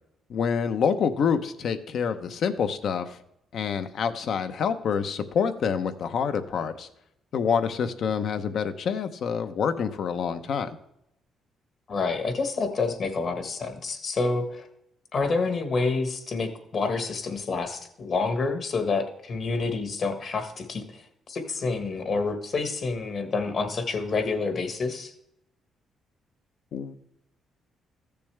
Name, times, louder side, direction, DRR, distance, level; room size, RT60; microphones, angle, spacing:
voice 1, 0.3-3.2 3.5-6.9 7.3-10.7 26.7-26.9, left 6 dB, 65° left, 9 dB, 0.8 m, -27 dB
voice 2, 11.9-14.7 15.1-25.1, left 4 dB, 50° left, 6 dB, 1.5 m, -28 dB
14.5 x 6.8 x 3.4 m, 0.78 s
cardioid pair, 90°, 0 cm